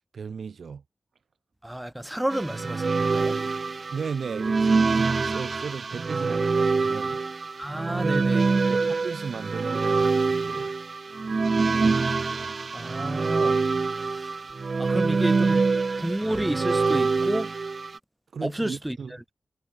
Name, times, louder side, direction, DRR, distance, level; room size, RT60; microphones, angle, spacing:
voice 1, 0.1-0.8 3.9-7.2 8.7-10.7 18.3-19.1, right 6 dB, 75° right, 3.1 m, -36 dB
voice 2, 1.6-3.4 7.6-8.5 12.7-13.6 14.1-14.3 14.8-15.7 16.0-17.5 18.4-19.0, right 1 dB, 10° right, 3.6 m, -30 dB
sound 1, 2.3-18.0, right 4 dB, 50° right, 0.3 m, -25 dB
cardioid pair, 70°, 0 cm